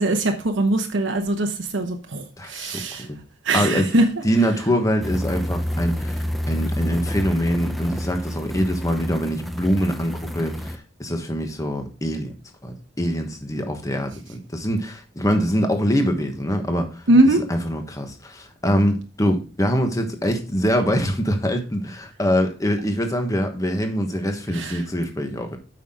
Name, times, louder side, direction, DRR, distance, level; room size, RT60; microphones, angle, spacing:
voice 1, 0.0-2.2 2.5-3.0 3.5-4.0 17.1-17.4 24.6-24.7, right 2 dB, 80° right, 1.0 m, -20 dB
voice 2, 2.4-3.2 3.5-12.3 12.6-25.6, equal, 20° left, 1.3 m, -24 dB
sound 1, 5.0-10.8, equal, ahead, 0.7 m, -28 dB
8.5 x 5.8 x 3.7 m
head